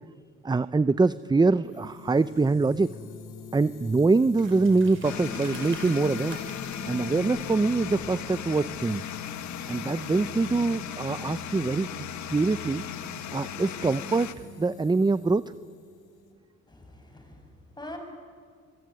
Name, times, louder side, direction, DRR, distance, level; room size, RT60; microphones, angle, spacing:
voice 1, 0.4-2.9 3.5-6.4 6.9-9.1 9.7-11.9 12.3-12.8 13.3-14.3 14.6-15.4, right 3 dB, 15° right, 15 dB, 0.6 m, -24 dB
sound 1, 1.6-16.3, left 2 dB, 90° left, 4.1 m, -44 dB
sound 2, 4.4-9.0, right 4 dB, 40° right, 6.2 m, -49 dB
sound 3, 5.0-14.3, left 10 dB, 70° left, 1.6 m, -37 dB
voice 2, 16.7-18.0, left 1 dB, 15° left, 4 dB, 7.6 m, -44 dB
27.0 x 22.5 x 9.5 m, 2.2 s
cardioid pair, 90°, 30 cm